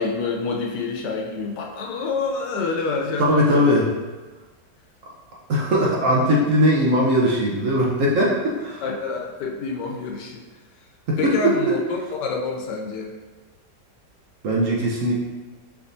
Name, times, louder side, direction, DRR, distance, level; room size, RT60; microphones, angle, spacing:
voice 1, 0.0-3.9 5.9-6.0 8.8-10.4 11.2-13.1, left 4 dB, 80° left, 0 dB, 1.3 m, -27 dB
voice 2, 3.3-3.9 5.5-8.8 11.1-11.5 14.4-15.1, equal, 60° right, -3 dB, 0.9 m, -19 dB
5.4 x 3.5 x 2.6 m, 1.2 s
omnidirectional pair, 1.8 m